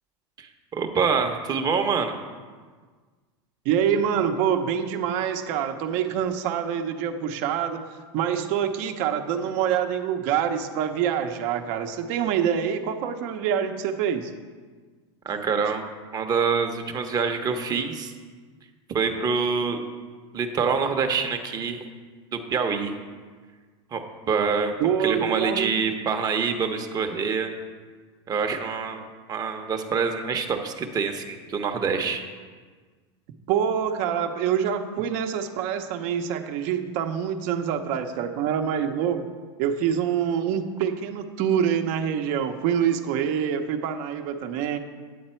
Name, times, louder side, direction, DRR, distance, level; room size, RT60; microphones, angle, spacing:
voice 1, 0.4-2.1 15.2-15.8 16.1-18.1 18.9-19.8 20.3-21.8 22.3-22.9 23.9-27.5 28.3-29.0 29.3-32.2, right 5 dB, 25° right, 5 dB, 0.9 m, -26 dB
voice 2, 3.6-7.9 8.1-14.3 24.8-25.8 33.5-39.3 39.6-44.8, right 8 dB, 55° right, 6 dB, 0.9 m, -26 dB
9.4 x 7.9 x 4.4 m, 1.5 s
supercardioid pair, 130°, 15 cm